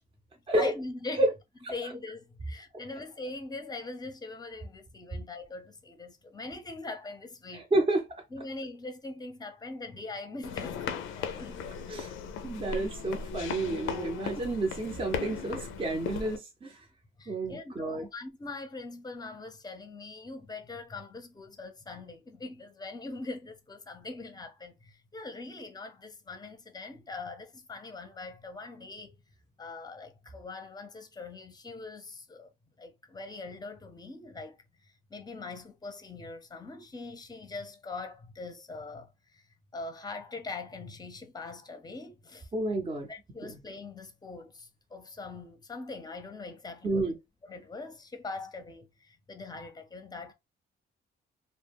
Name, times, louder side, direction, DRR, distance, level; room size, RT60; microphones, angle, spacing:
voice 1, 0.6-1.2 1.7-7.7 8.3-11.8 17.2-29.2 29.6-32.5 32.8-34.6 35.1-39.4 39.7-42.5 43.1-47.1 47.4-50.3, left 3 dB, 20° left, 0.6 m, -42 dB
voice 2, 7.5-8.1 11.9-12.1 12.4-16.9 17.3-18.1 42.5-43.1 43.4-43.6 46.8-47.2, right 2 dB, 25° right, 0.7 m, -30 dB
sound 1, 10.4-16.4, left 6 dB, 90° left, 0.5 m, -37 dB
2.1 x 2.0 x 3.4 m
cardioid pair, 90°, 20 cm